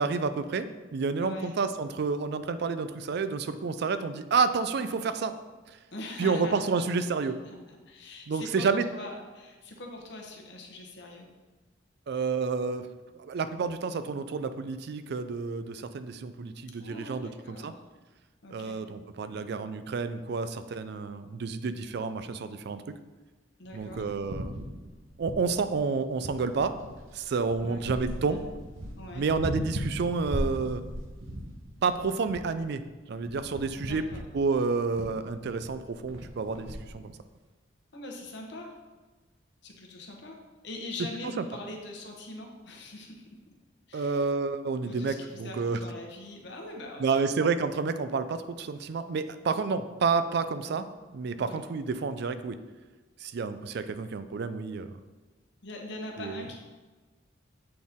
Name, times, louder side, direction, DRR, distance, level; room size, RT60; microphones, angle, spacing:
voice 1, 0.0-5.3 5.7-5.8 6.2-7.4 8.3-8.9 12.1-12.9 13.2-17.7 18.5-22.9 23.7-24.6 25.2-26.8 27.1-28.4 29.1-30.8 31.8-32.8 33.1-34.0 34.3-37.1 41.4-41.5 43.9-45.8 47.0-50.9 51.1-52.6 53.2-54.9 56.2-56.5, right 4 dB, 55° right, 11 dB, 0.4 m, -30 dB
voice 2, 1.2-1.6 5.9-11.3 16.8-17.7 18.4-18.8 23.6-24.1 27.6-27.9 28.2-28.4 29.0-29.3 33.8-34.2 37.9-38.7 39.6-40.4 40.6-43.2 43.9-44.2 44.9-47.1 51.4-51.6 55.6-56.6, left 2 dB, 60° left, 1 dB, 1.0 m, -42 dB
sound 1, 23.6-25.9 26.2-36.9, equal, 85° right, 0.9 m, -38 dB
7.6 x 4.2 x 3.6 m, 1.3 s
head